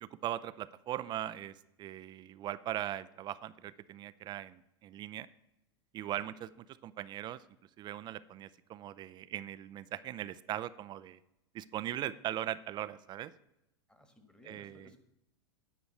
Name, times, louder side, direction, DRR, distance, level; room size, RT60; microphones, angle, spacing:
voice 1, 0.0-5.3 5.9-6.5 6.8-7.4 7.8-11.2 11.5-13.3 14.5-14.9, right 12 dB, 30° right, 16 dB, 0.5 m, -40 dB
voice 2, 13.9-15.0, left 1 dB, 5° left, 7 dB, 1.5 m, -59 dB
9.6 x 5.2 x 7.1 m, 0.87 s
hypercardioid pair, 110°, 15 cm